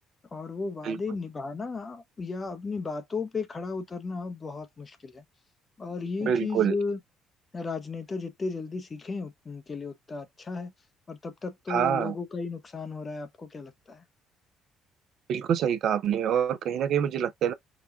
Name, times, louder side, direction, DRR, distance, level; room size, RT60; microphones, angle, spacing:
voice 1, 0.3-5.2 5.8-7.0 7.5-10.7 11.1-14.0, left 4 dB, 30° left, 0.7 m, -35 dB
voice 2, 6.2-6.7 11.7-12.1 15.3-17.5, right 8 dB, 55° right, 0.5 m, -26 dB
5.0 x 2.3 x 2.3 m
figure-of-eight pair, 50°, 0 cm